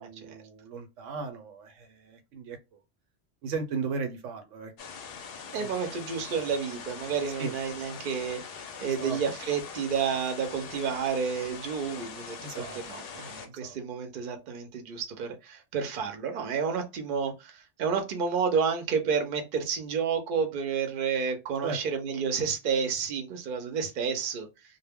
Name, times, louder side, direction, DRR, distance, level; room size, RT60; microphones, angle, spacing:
voice 1, 0.0-2.6 3.4-4.7 5.6-5.7 7.4-7.5 8.9-9.2 12.4-12.8 13.4-13.8 21.6-21.8, right 4 dB, 80° right, 0.9 m, -36 dB
sound 1, 4.8-13.5, left 6 dB, 65° left, 0.7 m, -42 dB
voice 2, 5.5-24.5, right 6 dB, 55° right, 0.7 m, -30 dB
2.1 x 2.1 x 3.4 m
omnidirectional pair, 1.3 m